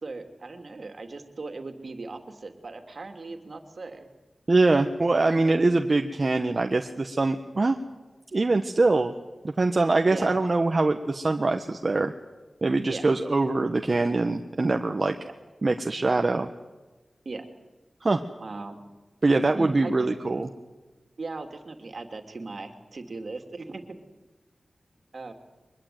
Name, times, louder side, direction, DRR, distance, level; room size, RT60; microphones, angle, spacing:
voice 1, 0.0-4.1 10.1-10.3 12.9-13.0 15.2-15.3 17.2-17.4 18.4-18.8 19.5-20.1 21.2-24.0 25.1-25.3, right 3 dB, 65° right, 6 dB, 2.9 m, -38 dB
voice 2, 4.5-7.8 8.3-9.1 9.4-12.1 12.6-15.2 15.6-16.5 18.0-18.2 19.2-20.5, right 3 dB, 50° right, 5 dB, 1.4 m, -23 dB
23.5 x 21.5 x 9.4 m, 1.2 s
wide cardioid pair, 60°, 0 cm